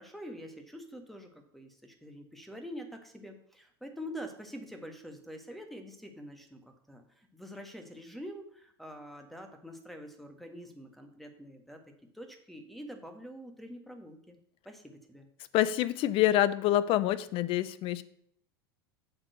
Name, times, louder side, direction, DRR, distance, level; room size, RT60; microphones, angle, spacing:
voice 1, 0.0-11.8 12.1-14.3 14.6-15.2, equal, ahead, 5 dB, 1.5 m, -46 dB
voice 2, 15.5-18.0, left 13 dB, 45° left, 16 dB, 0.6 m, -26 dB
7.6 x 4.4 x 6.6 m, 0.68 s
hypercardioid pair, 85°, 13 cm